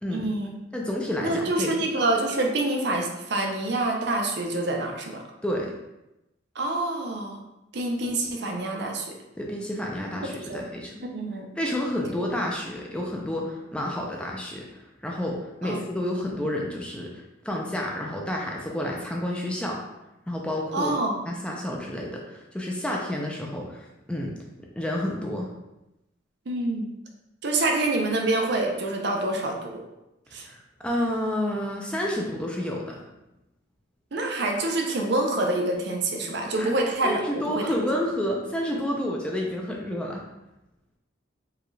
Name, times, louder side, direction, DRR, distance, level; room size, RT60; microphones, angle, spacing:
voice 1, 0.1-0.6 1.2-5.2 6.6-7.4 7.7-9.1 10.4-10.6 11.0-11.5 12.2-12.3 15.6-15.8 20.7-21.2 26.5-26.9 27.4-29.8 30.3-30.5 34.1-38.0, right 2 dB, 60° right, 2 dB, 0.6 m, -26 dB
voice 2, 0.7-1.7 5.4-5.7 9.4-11.1 11.6-19.8 20.3-20.9 21.3-24.4 24.8-25.5 30.4-33.0 36.2-36.7 37.0-40.2, left 1 dB, 5° left, -2 dB, 0.4 m, -30 dB
4.7 x 2.4 x 3.1 m, 0.92 s
head